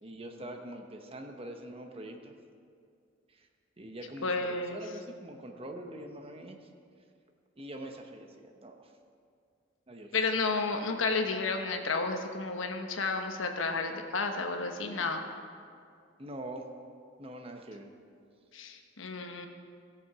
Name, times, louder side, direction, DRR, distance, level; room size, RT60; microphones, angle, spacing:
voice 1, 0.0-2.3 3.3-3.5 3.8-6.6 7.6-8.9 9.9-10.1 16.2-16.7 17.2-17.9, right 1 dB, 30° right, 4 dB, 0.9 m, -44 dB
voice 2, 4.2-4.8 10.1-15.2 18.5-19.5, left 3 dB, 90° left, 4 dB, 1.1 m, -31 dB
17.0 x 7.1 x 4.8 m, 2.3 s
head